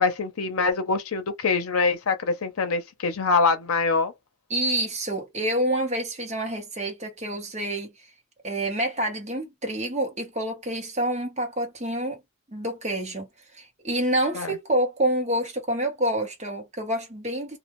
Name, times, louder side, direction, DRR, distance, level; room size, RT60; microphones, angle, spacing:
voice 1, 0.0-4.1 14.3-14.5, left 4 dB, 90° left, 0.6 m, -24 dB
voice 2, 4.5-7.9 8.4-12.2 12.5-13.3 13.5-17.6, right 1 dB, 35° right, 1.0 m, -27 dB
2.3 x 2.1 x 3.0 m
head